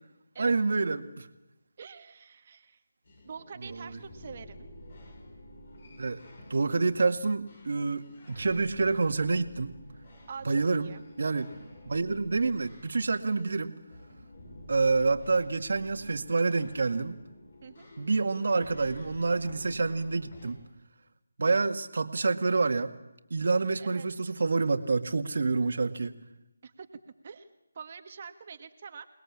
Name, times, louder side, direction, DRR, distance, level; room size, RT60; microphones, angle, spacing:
voice 1, 0.4-1.3 3.6-4.0 6.0-6.2 6.5-9.7 10.5-11.5 11.9-13.7 14.7-17.2 18.0-20.6 21.4-22.9 23.3-26.1, right 3 dB, 60° right, 8 dB, 2.0 m, -27 dB
voice 2, 1.8-2.8 3.3-4.7 10.3-11.0 17.6-17.9 21.4-21.6 23.8-24.3 26.6-26.9 27.2-27.5 27.8-29.1, right 6 dB, 40° right, 8 dB, 1.7 m, -45 dB
sound 1, 3.1-20.5, left 1 dB, 50° left, 7.4 m, -50 dB
28.5 x 20.5 x 8.7 m, 0.97 s
figure-of-eight pair, 160°, 0 cm